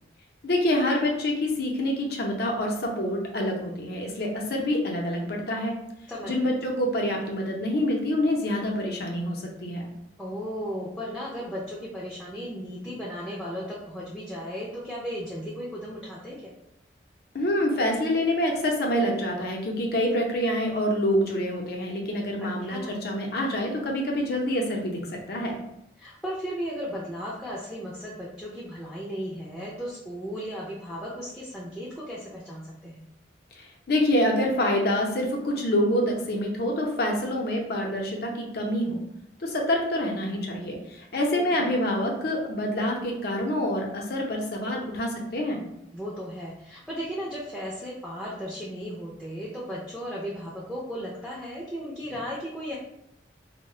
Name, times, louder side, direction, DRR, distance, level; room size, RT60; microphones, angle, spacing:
voice 1, 0.4-5.8 6.2-9.9 17.3-25.6 33.5-39.0 39.4-45.6, left 1 dB, 55° left, 1 dB, 0.6 m, -26 dB
voice 2, 6.1-6.5 10.2-16.5 22.4-22.9 26.0-33.0 41.4-41.5 45.9-52.8, equal, 5° left, -6 dB, 0.4 m, -35 dB
2.3 x 2.1 x 3.7 m, 0.81 s
head